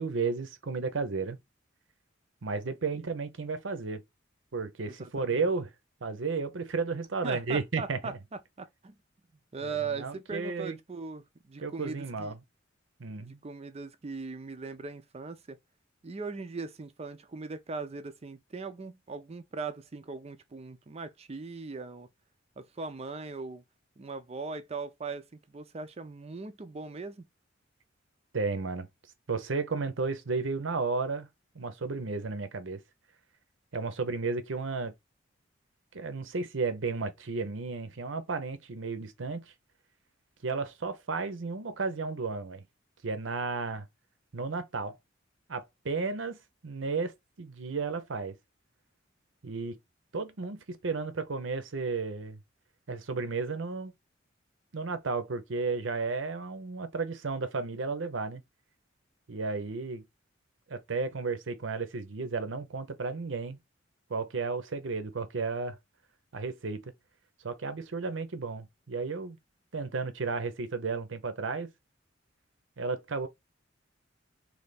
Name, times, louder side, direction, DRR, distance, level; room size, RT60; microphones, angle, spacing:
voice 1, 0.0-1.4 2.4-4.0 4.5-5.7 6.0-8.2 9.6-10.8 11.6-12.4 13.0-13.4 28.3-28.9 29.3-31.3 31.5-32.8 33.7-34.9 35.9-39.5 40.4-42.6 43.0-43.9 44.3-45.0 45.5-46.4 46.6-47.1 47.4-48.3 49.4-49.8 50.1-52.4 52.9-53.9 54.7-58.4 59.3-60.0 60.7-63.6 64.1-65.8 66.3-66.9 67.4-69.4 69.7-71.7 72.8-73.3, right 4 dB, 70° right, 0.7 m, -33 dB
voice 2, 4.9-5.5 7.2-8.1 8.6-8.9 9.5-12.3 13.2-15.6 16.0-22.1 22.6-23.6 24.0-27.3, right 4 dB, 30° right, 0.5 m, -39 dB
3.3 x 2.8 x 4.0 m
head